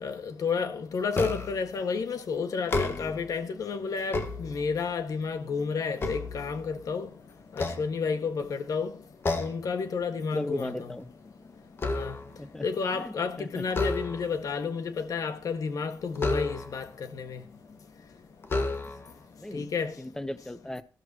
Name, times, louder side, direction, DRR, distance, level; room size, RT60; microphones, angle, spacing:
voice 1, 0.0-7.1 7.6-8.9 9.4-10.7 11.9-12.2 12.6-17.4 19.5-19.9, left 5 dB, 75° left, 1.7 m, -31 dB
sound 1, 1.1-1.7 2.6-3.3 3.9-5.0 5.5-7.0 7.5-8.5 9.2-9.7 10.1-10.4 10.7-12.5 13.7-14.5 16.2-16.9 17.7-17.8 18.4-19.2, left 2 dB, 40° left, 1.8 m, -32 dB
voice 2, 10.2-11.1 12.4-13.7 19.4-19.7 20.0-20.8, left 1 dB, 10° left, 0.9 m, -37 dB
14.5 x 13.5 x 3.0 m
wide cardioid pair, 135°, 6 cm